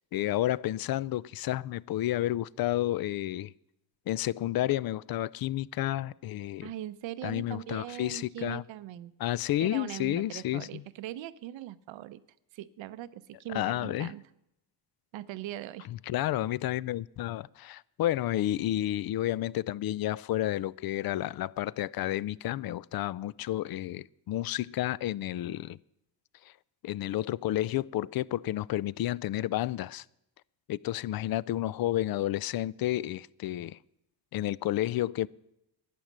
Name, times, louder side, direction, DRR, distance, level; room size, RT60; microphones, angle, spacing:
voice 1, 0.1-3.5 4.1-6.7 7.2-8.6 9.2-10.8 13.5-14.1 15.9-25.8 26.8-30.0 30.7-33.8 34.3-35.3, left 14 dB, 55° left, 0.5 m, -31 dB
voice 2, 6.6-9.1 9.6-12.2 12.5-14.2 15.1-15.9, right 13 dB, 75° right, 0.8 m, -40 dB
11.5 x 9.5 x 7.4 m
cardioid pair, 80°, 46 cm